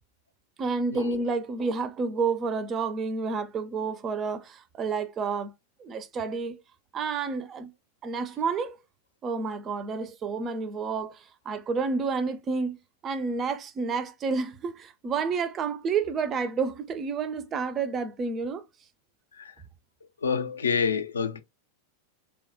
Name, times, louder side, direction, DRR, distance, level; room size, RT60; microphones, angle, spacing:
voice 1, 0.6-5.5 5.8-6.6 6.9-7.7 8.0-8.8 9.2-12.8 13.0-18.6, right 4 dB, 25° right, 0.4 m, -30 dB
voice 2, 20.2-21.4, left 6 dB, 70° left, 0.4 m, -27 dB
3.2 x 2.2 x 2.7 m
figure-of-eight pair, 90°, 0 cm